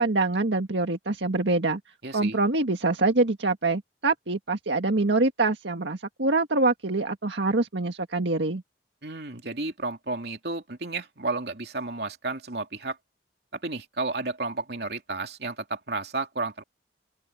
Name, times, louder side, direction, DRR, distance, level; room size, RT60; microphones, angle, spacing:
voice 1, 0.0-1.8 2.1-8.6, right 2 dB, 90° right, 1.7 m, -25 dB
voice 2, 2.0-2.4 9.0-13.0 13.5-16.6, right 3 dB, 65° right, 3.0 m, -32 dB
open air
head